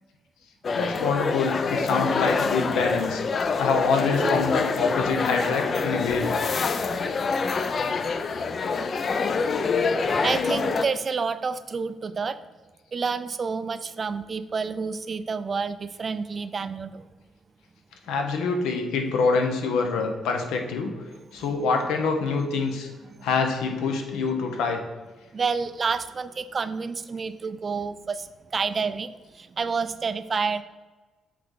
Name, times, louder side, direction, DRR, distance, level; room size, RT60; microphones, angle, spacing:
sound 1, 0.6-10.9, left 4 dB, 45° left, 0.4 m, -26 dB
voice 1, 0.7-3.2 3.6-6.3 18.1-20.9 21.3-22.9 23.2-24.8, left 4 dB, 90° left, 4 dB, 0.9 m, -25 dB
voice 2, 10.2-12.4 12.9-17.1 20.0-20.1 21.3-21.5 23.0-23.3 25.3-30.6, right 5 dB, 40° right, 14 dB, 0.3 m, -29 dB
7.6 x 3.3 x 3.8 m, 1.2 s
cardioid pair, 90°, 0 cm